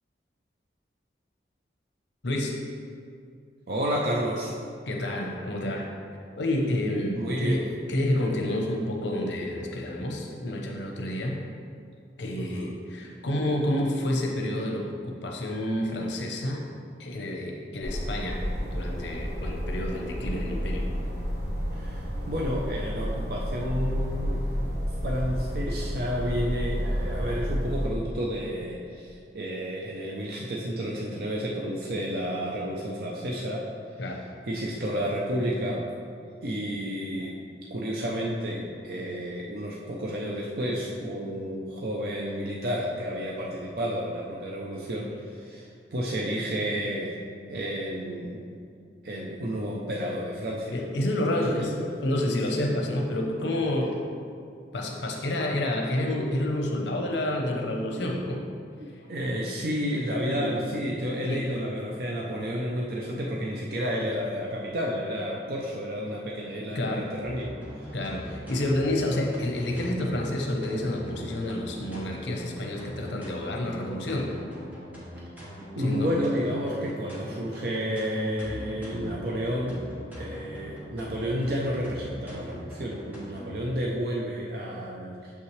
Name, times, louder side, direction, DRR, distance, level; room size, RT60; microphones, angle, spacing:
voice 1, 2.2-2.6 4.9-5.9 6.4-7.6 7.9-11.4 12.2-16.6 17.0-18.4 18.7-20.9 34.0-34.2 50.7-51.8 52.0-54.0 54.7-58.4 60.3-60.5 61.2-61.5 66.7-67.1 67.9-74.3 75.8-76.1, left 1 dB, 80° left, 1 dB, 0.8 m, -29 dB
voice 2, 3.7-4.5 7.1-7.7 12.4-12.8 21.7-24.4 25.0-33.7 34.0-34.2 34.5-35.9 36.4-37.4 37.7-47.2 47.5-48.4 49.0-50.8 51.2-51.9 57.9-58.1 58.8-67.5 67.8-67.9 75.7-79.8 80.2-85.3, equal, 55° right, -3 dB, 0.6 m, -31 dB
sound 1, 17.8-27.9, equal, 80° right, 1.3 m, -31 dB
sound 2, 67.2-83.6, equal, 10° right, 1.2 m, -41 dB
6.6 x 5.7 x 3.2 m, 2.4 s
head